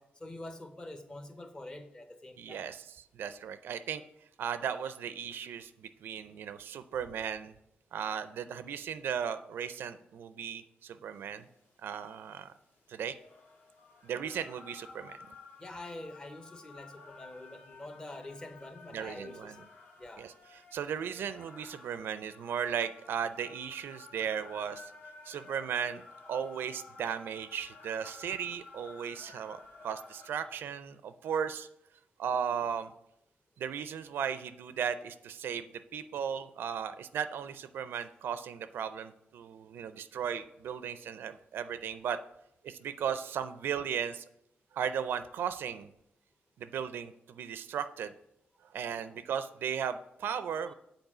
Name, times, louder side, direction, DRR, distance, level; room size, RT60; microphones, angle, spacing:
voice 1, 0.0-2.7 15.6-19.7 20.0-20.3 48.9-49.2, left 2 dB, 20° left, 0.7 m, -46 dB
voice 2, 2.4-2.8 3.1-4.0 4.4-7.5 7.9-11.5 11.8-12.5 12.9-13.1 14.0-15.2 18.9-19.6 20.2-24.9 25.3-26.0 26.3-31.7 32.2-32.9 33.6-42.2 42.6-44.2 44.7-45.9 46.6-48.1 48.7-50.7, right 8 dB, 80° right, 0.4 m, -36 dB
sound 1, 11.3-30.3, left 3 dB, 65° left, 1.7 m, -53 dB
7.9 x 4.4 x 6.0 m
wide cardioid pair, 145°, 4 cm